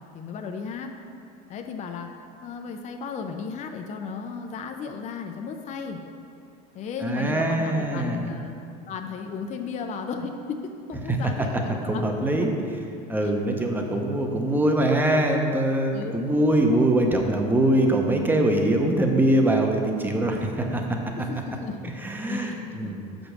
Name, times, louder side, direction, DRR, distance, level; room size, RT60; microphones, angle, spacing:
voice 1, 0.1-0.9 1.5-2.1 2.4-6.0 6.7-12.1 13.2-13.3 15.9-16.2 21.1-22.9, left 5 dB, 35° left, 4 dB, 0.6 m, -35 dB
voice 2, 7.0-8.3 11.1-11.3 11.9-12.8 13.1-21.0 22.0-23.1, right 1 dB, 10° right, 2 dB, 0.9 m, -23 dB
6.1 x 5.2 x 6.1 m, 2.6 s
supercardioid pair, 110°, 20 cm